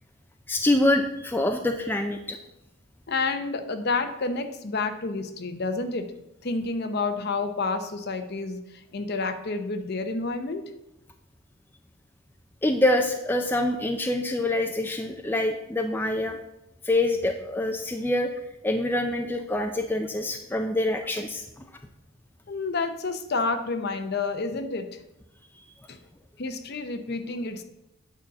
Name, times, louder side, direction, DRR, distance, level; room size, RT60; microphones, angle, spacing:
voice 1, 0.5-2.4 12.6-16.4 16.8-18.3 18.6-21.5, left 1 dB, 10° left, 4 dB, 0.4 m, -25 dB
voice 2, 3.1-6.1 6.4-10.7 22.5-25.0 25.9-26.0 26.4-27.6, left 3 dB, 50° left, 8 dB, 0.7 m, -29 dB
9.0 x 4.1 x 5.8 m, 0.88 s
head